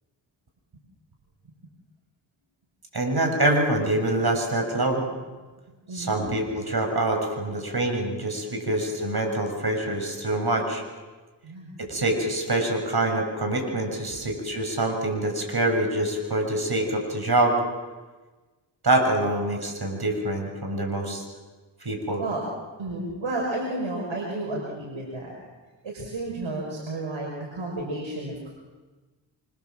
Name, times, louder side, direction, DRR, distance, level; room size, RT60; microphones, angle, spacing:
voice 1, 2.9-5.1 5.9-10.8 11.8-17.6 18.8-21.2 21.8-22.2, right 1 dB, 50° right, 3 dB, 7.2 m, -25 dB
voice 2, 5.9-6.3 11.4-11.7 22.2-22.4 22.8-25.3 25.8-28.5, right 2 dB, 80° right, -2 dB, 5.5 m, -32 dB
26.5 x 26.0 x 7.6 m, 1.3 s
cardioid pair, 40°, 47 cm